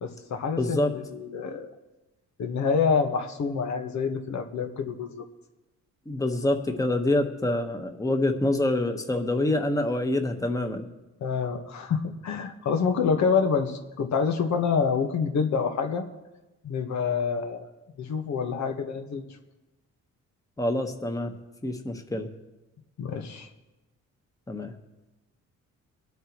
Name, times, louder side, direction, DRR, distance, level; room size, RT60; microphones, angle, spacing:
voice 1, 0.0-1.7 2.4-5.2 11.2-16.0 16.6-17.7 18.0-19.2 23.0-23.5, left 5 dB, 70° left, 4 dB, 1.4 m, -27 dB
voice 2, 0.6-0.9 6.1-10.8 20.6-21.3 21.6-22.3 24.5-24.7, left 1 dB, 10° left, 5 dB, 1.3 m, -26 dB
23.5 x 9.0 x 3.1 m, 1.1 s
cardioid pair, 90°, 30 cm